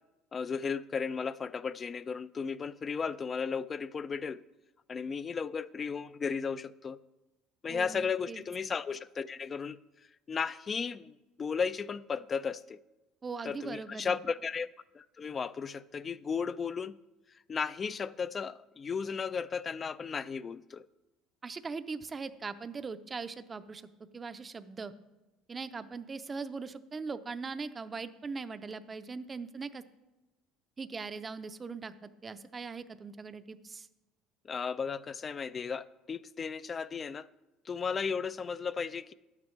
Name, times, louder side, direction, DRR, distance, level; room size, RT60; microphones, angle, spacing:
voice 1, 0.3-4.4 4.9-7.0 7.6-9.8 10.3-12.8 13.4-14.7 14.9-16.9 17.5-20.9 34.4-37.3 37.7-39.1, left 6 dB, 30° left, 0.3 m, -35 dB
voice 2, 7.7-8.4 13.2-14.2 21.4-23.9 24.1-24.9 25.5-29.8 30.8-33.9, right 4 dB, 25° right, 0.5 m, -40 dB
11.5 x 9.5 x 3.1 m
supercardioid pair, 100°, 0 cm